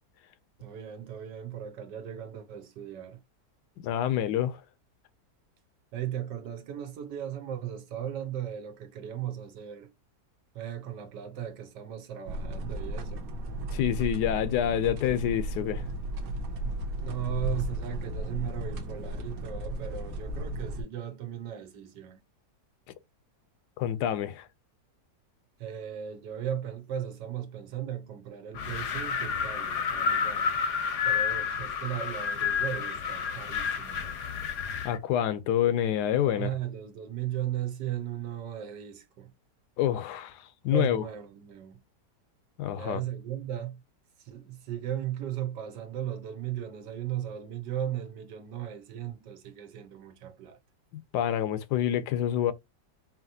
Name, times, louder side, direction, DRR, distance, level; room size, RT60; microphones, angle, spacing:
voice 1, 0.6-3.2 5.9-9.9 10.5-13.3 17.0-22.2 25.6-30.5 31.0-34.1 36.2-39.3 40.7-41.8 42.7-43.8 44.2-50.6, right 10 dB, 85° right, 1.4 m, -37 dB
voice 2, 3.8-4.6 13.7-15.9 23.8-24.5 34.8-36.5 39.8-41.0 42.6-43.0 50.9-52.5, left 10 dB, 80° left, 1.1 m, -27 dB
sound 1, 12.3-20.8, right 1 dB, 60° right, 1.2 m, -34 dB
Wind, 28.5-35.0, left 6 dB, 55° left, 0.9 m, -30 dB
4.9 x 2.9 x 2.6 m
omnidirectional pair, 1.8 m